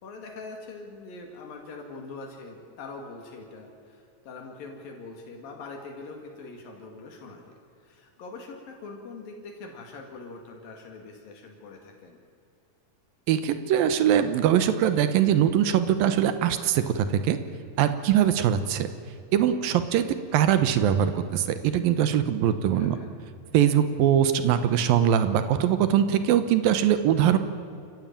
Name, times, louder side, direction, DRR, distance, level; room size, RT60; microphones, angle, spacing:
voice 1, 0.0-12.2 22.8-23.1, left 3 dB, 75° left, 2 dB, 4.0 m, -43 dB
voice 2, 13.3-17.4 17.8-18.9 19.3-20.1 20.3-23.0 23.5-27.4, right 10 dB, 85° right, 10 dB, 2.8 m, -22 dB
28.5 x 15.5 x 8.9 m, 2.5 s
omnidirectional pair, 4.1 m